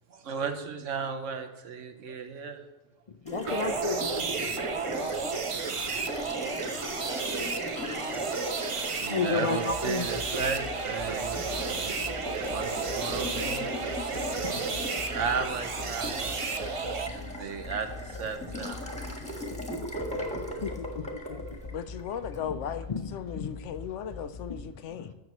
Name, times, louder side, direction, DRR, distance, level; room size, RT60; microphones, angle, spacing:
voice 1, 0.1-2.6 4.8-4.9 5.4-5.6 7.4-7.9 8.7-13.8 15.1-18.8 21.3-21.4, right 5 dB, 70° right, 7 dB, 1.3 m, -36 dB
voice 2, 3.2-4.2 9.0-10.1 14.1-14.8 20.6-21.4 22.4-22.6 22.9-23.5 24.5-24.6 24.9-25.1, left 5 dB, 55° left, 7 dB, 0.4 m, -33 dB
Water tap faucet, 3.3-22.4, left 1 dB, 5° left, 1.6 m, -38 dB
sound 1, 3.5-17.1, right 4 dB, 40° right, 0.4 m, -32 dB
sound 2, 9.7-24.6, left 3 dB, 35° left, 0.8 m, -44 dB
voice 3, 21.7-25.1, left 8 dB, 75° left, 12 dB, 0.9 m, -37 dB
12.5 x 7.7 x 3.1 m, 1.1 s
omnidirectional pair, 1.3 m